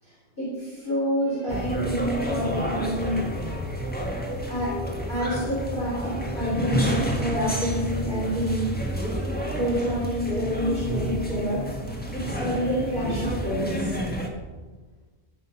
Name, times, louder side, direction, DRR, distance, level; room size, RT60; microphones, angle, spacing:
voice 1, 0.0-3.2 4.5-4.7 5.1-8.7 9.5-11.6 12.1-14.0, equal, 40° left, -8 dB, 3.7 m, -28 dB
sound 1, 1.5-14.3, equal, 5° left, 1.5 m, -29 dB
14.0 x 7.5 x 5.7 m, 1.3 s
omnidirectional pair, 1.3 m